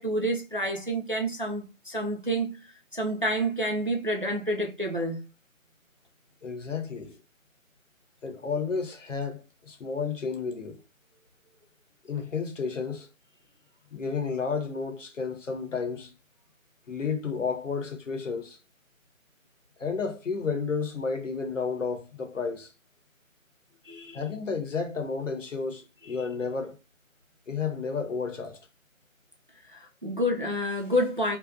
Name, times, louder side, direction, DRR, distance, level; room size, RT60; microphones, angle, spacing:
voice 1, 0.0-2.6 2.9-5.2 23.9-24.2 26.1-26.2 29.7-31.4, equal, 40° right, 0.4 m, -29 dB
voice 2, 6.4-7.1 8.2-10.8 12.0-13.1 13.9-16.1 16.9-18.6 19.8-22.7 24.1-26.8 27.5-28.6, left 5 dB, 65° left, 0.8 m, -32 dB
2.6 x 2.2 x 2.5 m
figure-of-eight pair, 165°, 41 cm